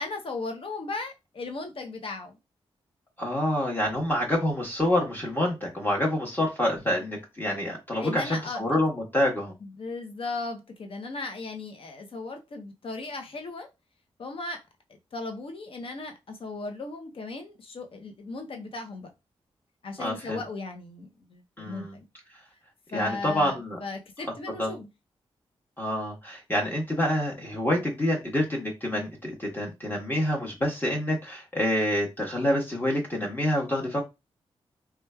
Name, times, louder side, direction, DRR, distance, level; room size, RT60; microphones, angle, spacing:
voice 1, 0.0-2.4 8.0-8.8 9.6-13.7 14.2-14.6 14.9-19.1 19.8-22.1 22.9-24.9, left 3 dB, 55° left, 0.7 m, -36 dB
voice 2, 3.2-9.5 20.0-20.4 21.6-22.0 22.9-23.8 24.2-24.7 25.8-34.0, left 1 dB, 20° left, 1.1 m, -27 dB
3.0 x 2.3 x 2.2 m
cardioid pair, 55°, 11 cm